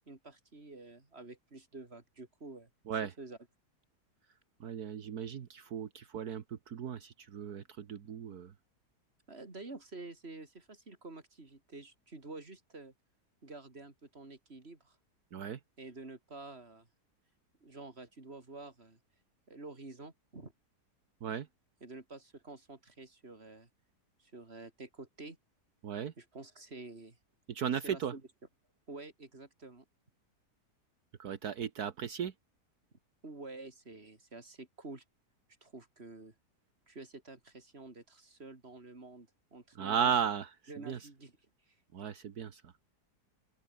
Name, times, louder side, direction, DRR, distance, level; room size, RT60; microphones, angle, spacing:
voice 1, 0.1-2.7 3.0-3.4 9.3-12.9 13.4-15.0 15.8-16.9 17.6-19.0 19.5-20.5 21.8-23.7 24.2-25.4 26.2-27.2 27.8-28.2 28.9-29.8 33.2-35.0 35.6-36.3 36.9-40.1 40.7-41.4 41.7-41.8, right 3 dB, 40° right, 3.8 m, -49 dB
voice 2, 4.6-8.5 15.3-15.6 21.2-21.5 25.8-26.1 27.5-28.1 31.2-32.3 39.8-40.5 40.9-41.0 41.9-42.7, right 8 dB, 70° right, 1.8 m, -35 dB
open air
omnidirectional pair, 1.8 m